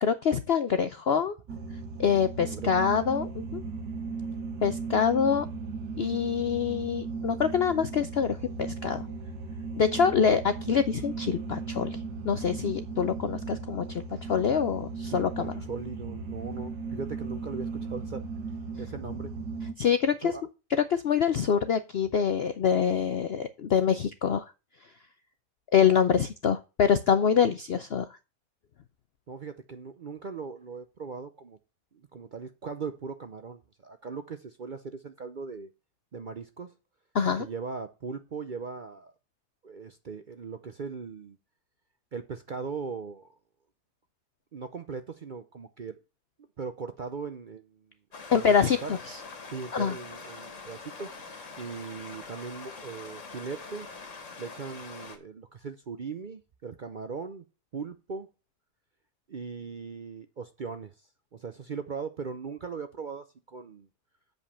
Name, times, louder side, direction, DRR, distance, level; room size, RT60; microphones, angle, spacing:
voice 1, 0.0-1.4 2.0-3.6 4.6-5.5 6.0-9.1 9.8-12.0 12.2-15.5 19.8-20.3 20.9-24.5 25.7-28.1 37.1-37.5 48.3-49.2 49.7-50.0, left 7 dB, 65° left, 0.6 m, -25 dB
sound 1, 1.5-19.7, right 4 dB, 85° right, 1.9 m, -37 dB
voice 2, 2.4-2.7 15.0-18.2 18.8-19.3 20.2-20.4 29.3-31.6 31.9-35.7 36.1-36.7 37.4-39.1 39.6-41.4 42.1-43.3 44.5-46.0 46.6-47.9 48.3-49.0 49.5-51.3 51.6-53.9 54.4-57.5 57.7-58.3 59.3-63.9, right 5 dB, 60° right, 0.5 m, -39 dB
Stream, 48.1-55.2, left 4 dB, 50° left, 1.9 m, -44 dB
8.0 x 5.3 x 6.9 m
omnidirectional pair, 1.7 m